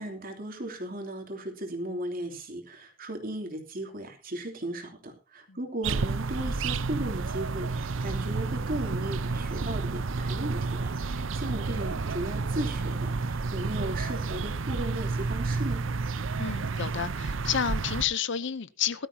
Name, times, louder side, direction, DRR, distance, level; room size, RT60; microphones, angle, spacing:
voice 1, 0.0-15.8, right 1 dB, 45° right, 2.9 m, -36 dB
sound 1, 5.8-18.0, right 4 dB, 75° right, 0.7 m, -30 dB
voice 2, 16.4-19.1, left 8 dB, 65° left, 0.7 m, -30 dB
18.5 x 12.5 x 2.8 m
head